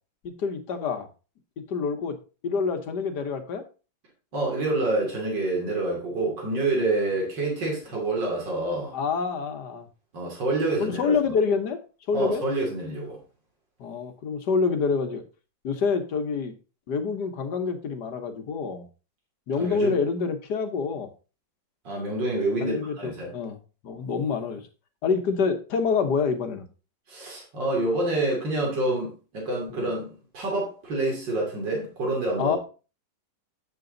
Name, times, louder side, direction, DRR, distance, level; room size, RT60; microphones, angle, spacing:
voice 1, 0.2-1.1 1.7-2.2 2.4-3.6 8.9-9.9 10.8-11.8 12.1-12.4 13.8-15.2 15.6-16.5 16.9-18.8 19.5-21.1 22.6-23.6 23.8-24.6 25.0-26.7 32.4-32.6, left 5 dB, 65° left, 1.7 m, -27 dB
voice 2, 4.3-9.0 10.1-11.2 12.1-13.2 19.6-20.0 21.9-23.3 27.1-32.5, right 2 dB, 70° right, 3.5 m, -27 dB
8.3 x 6.8 x 3.9 m
omnidirectional pair, 2.0 m